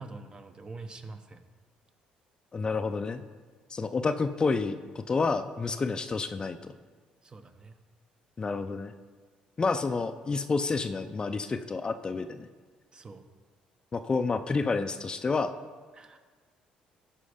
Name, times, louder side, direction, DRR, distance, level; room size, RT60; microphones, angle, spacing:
voice 1, 0.0-1.4 7.2-7.8 12.9-13.2 15.9-16.2, right 3 dB, 30° right, 7 dB, 0.9 m, -45 dB
voice 2, 2.5-3.2 3.7-6.7 8.4-8.9 9.6-12.5 13.9-15.5, left 4 dB, 30° left, 9 dB, 0.5 m, -29 dB
13.0 x 5.1 x 5.0 m, 1.5 s
cardioid pair, 90°, 3 cm